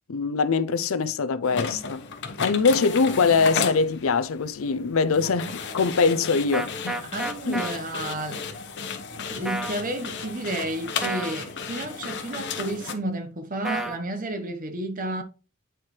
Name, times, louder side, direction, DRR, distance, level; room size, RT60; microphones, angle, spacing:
voice 1, 0.1-2.0 2.4-7.1 7.5-7.6, left 4 dB, 80° left, 0.5 m, -23 dB
sound 1, 1.4-12.9, left 5 dB, 55° left, 0.9 m, -34 dB
sound 2, 6.5-7.7 9.5-9.8 11.0-11.4 13.6-14.0, right 2 dB, ahead, 0.7 m, -30 dB
voice 2, 7.1-8.5 9.3-15.2, right 1 dB, 40° right, 1.0 m, -31 dB
9.0 x 4.5 x 3.2 m
head